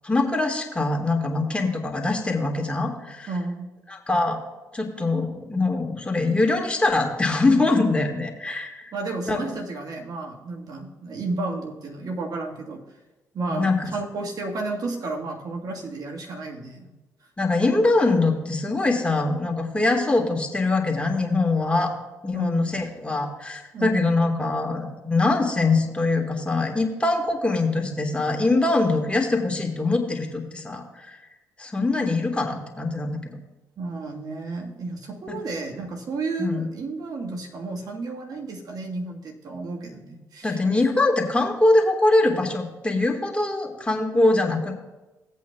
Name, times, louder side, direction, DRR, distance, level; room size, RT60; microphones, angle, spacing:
voice 1, 0.0-3.3 3.9-4.4 4.7-8.9 9.3-9.4 13.5-13.9 17.4-22.0 22.2-31.2 31.6-33.4 35.3-35.4 36.4-36.6 40.4-44.7, left 2 dB, 15° left, 1 dB, 1.9 m, -23 dB
voice 2, 3.3-3.7 8.9-12.8 13.3-16.9 22.3-22.7 23.7-24.1 33.8-40.6, right 3 dB, 50° right, 1 dB, 1.4 m, -32 dB
16.0 x 8.3 x 2.3 m, 1.1 s
hypercardioid pair, 45°, 8 cm